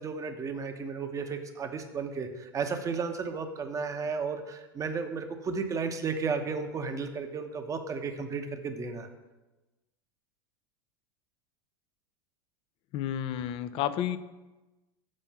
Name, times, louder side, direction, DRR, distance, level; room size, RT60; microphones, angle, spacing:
voice 1, 0.0-9.1, right 5 dB, 25° right, 6 dB, 0.9 m, -33 dB
voice 2, 12.9-14.2, left 11 dB, 45° left, 12 dB, 0.6 m, -31 dB
7.6 x 4.3 x 6.9 m, 1.1 s
hypercardioid pair, 85°, 13 cm